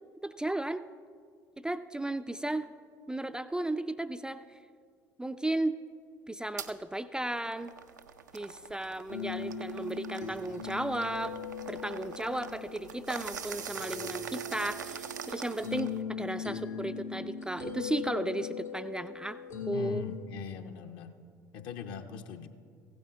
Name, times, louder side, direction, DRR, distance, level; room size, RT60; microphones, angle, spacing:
voice 1, 0.2-0.8 1.6-2.7 3.1-4.4 5.2-5.7 6.3-7.7 8.3-11.4 11.7-19.4 19.7-20.0, right 1 dB, 10° right, 10 dB, 0.3 m, -34 dB
sound 1, 6.6-6.7 7.2-16.0, right 7 dB, 80° right, 0.4 m, -44 dB
sound 2, 9.1-20.2, left 6 dB, 85° left, 1.5 m, -40 dB
voice 2, 19.7-21.2 21.5-22.5, left 6 dB, 55° left, 7 dB, 0.7 m, -41 dB
15.5 x 9.2 x 3.5 m, 2.1 s
figure-of-eight pair, 55°, 10 cm